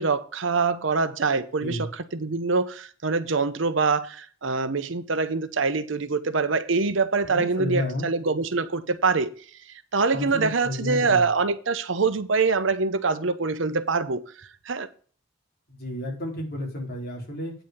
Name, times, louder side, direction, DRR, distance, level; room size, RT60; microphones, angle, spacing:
voice 1, 0.0-9.3 9.7-14.9, right 4 dB, 65° right, 0.8 m, -25 dB
voice 2, 7.3-8.1 10.1-11.3 15.7-17.5, left 1 dB, 50° left, 3.5 m, -31 dB
9.0 x 4.9 x 7.0 m
head